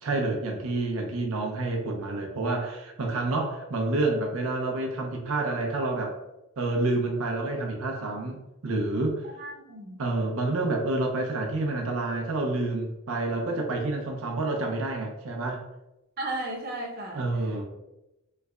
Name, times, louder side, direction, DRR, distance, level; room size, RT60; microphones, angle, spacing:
voice 1, 0.0-6.2 6.6-9.2 10.0-15.6 17.1-17.6, right 2 dB, 90° right, 1 dB, 0.6 m, -28 dB
voice 2, 9.2-10.0 16.2-17.3, right 2 dB, 45° right, -1 dB, 0.7 m, -35 dB
3.2 x 2.2 x 3.5 m, 0.94 s
head